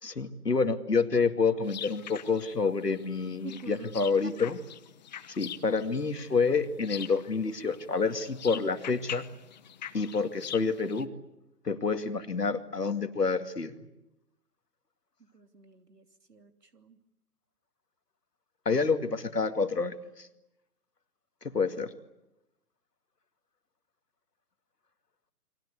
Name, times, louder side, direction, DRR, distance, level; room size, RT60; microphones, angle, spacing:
voice 1, 0.0-4.6 5.4-9.3 9.9-11.1 11.6-13.7 18.7-20.3 21.5-21.9, left 4 dB, 85° left, 8 dB, 2.4 m, -28 dB
sound 1, 1.6-11.0, left 10 dB, 30° left, 1.0 m, -44 dB
voice 2, 3.4-3.9 15.2-17.0, right 4 dB, 90° right, 8 dB, 3.0 m, -48 dB
30.0 x 23.0 x 8.3 m, 0.95 s
figure-of-eight pair, 145°, 46 cm